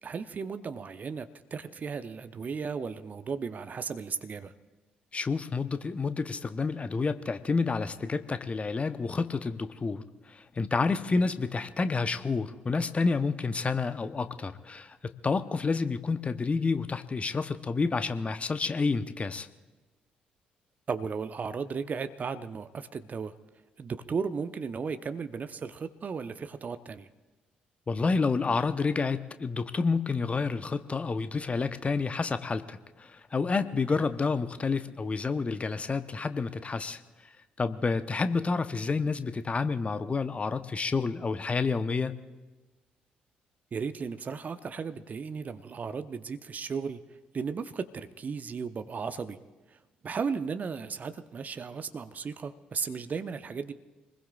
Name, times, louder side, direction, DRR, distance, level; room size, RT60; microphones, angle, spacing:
voice 1, 0.0-4.5 11.2-11.3 20.9-23.3 23.8-27.1 33.9-34.0 43.7-47.0 47.3-49.4 49.7-49.8 50.0-53.7, right 5 dB, 40° right, 10 dB, 0.9 m, -35 dB
voice 2, 5.1-10.0 10.3-19.5 27.9-37.0 37.6-42.1, left 4 dB, 30° left, 11 dB, 0.9 m, -29 dB
26.5 x 20.5 x 2.4 m, 1.2 s
figure-of-eight pair, 45°, 4 cm